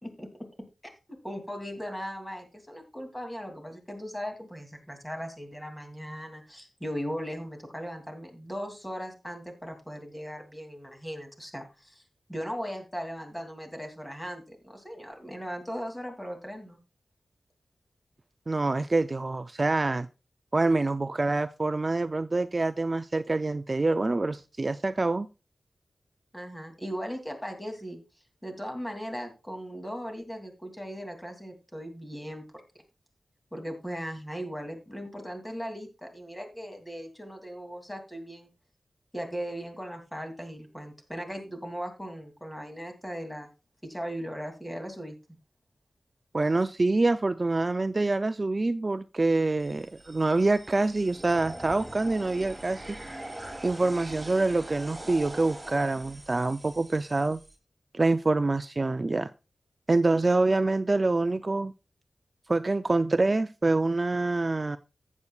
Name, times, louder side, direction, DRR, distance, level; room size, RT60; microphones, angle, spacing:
voice 1, 0.0-0.5 0.8-12.0 12.3-16.8 26.3-28.0 28.4-32.4 33.5-38.5 39.1-43.5 43.8-45.2, equal, 10° left, 4 dB, 2.7 m, -38 dB
voice 2, 18.5-20.1 20.5-25.3 46.3-53.0 53.6-57.4 57.9-59.3 59.9-61.7 62.5-64.8, right 2 dB, 40° right, 11 dB, 0.4 m, -26 dB
sound 1, 49.6-57.5, right 1 dB, 15° right, 2.6 m, -43 dB
14.5 x 8.4 x 2.4 m, 0.29 s
wide cardioid pair, 75°, 0 cm